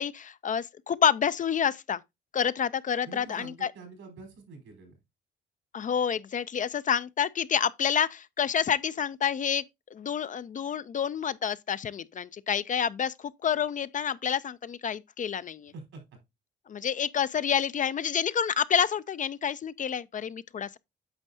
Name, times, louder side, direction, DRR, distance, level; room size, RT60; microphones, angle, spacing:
voice 1, 0.0-2.0 2.3-3.7 5.7-9.6 9.9-15.7 16.7-20.8, left 8 dB, 40° left, 0.5 m, -28 dB
voice 2, 3.0-4.9 15.7-16.0, right 3 dB, 85° right, 4.4 m, -46 dB
9.0 x 6.2 x 2.7 m
cardioid pair, 90°, 20 cm